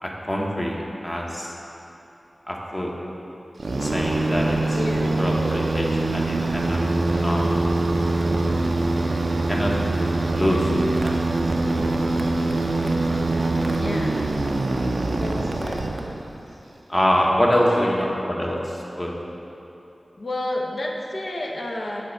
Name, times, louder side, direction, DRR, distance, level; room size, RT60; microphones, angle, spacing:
voice 1, 0.0-1.5 2.5-2.9 3.8-4.6 5.0-5.9 6.1-6.8 7.2-7.8 9.5-9.7 10.3-11.3 16.9-19.1, equal, 30° left, -2 dB, 1.0 m, -24 dB
sound 1, 3.6-16.4, right 2 dB, 80° right, 0.4 m, -23 dB
voice 2, 4.7-5.1 13.7-14.2 15.2-15.9 16.5-16.6 17.7-18.0 20.2-22.0, left 1 dB, 70° left, -1 dB, 0.8 m, -30 dB
7.6 x 3.5 x 5.2 m, 3.0 s
cardioid pair, 40°, 0 cm